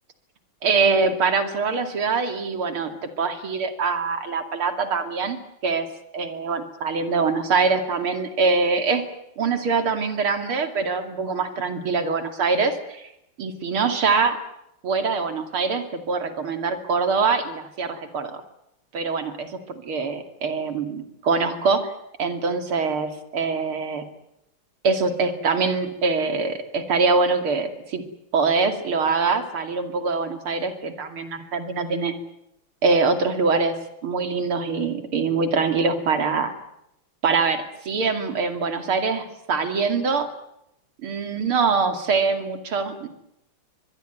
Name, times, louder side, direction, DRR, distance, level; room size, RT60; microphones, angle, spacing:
voice 1, 0.6-5.4 5.6-5.9 6.1-9.0 9.4-13.1 13.4-14.4 14.8-18.4 18.9-21.9 22.2-24.0 24.8-28.0 28.3-32.1 32.8-33.8 34.0-36.5 37.2-40.3 41.0-43.1, right 4 dB, 75° right, 8 dB, 3.5 m, -24 dB
24.5 x 21.0 x 9.4 m, 0.81 s
omnidirectional pair, 2.4 m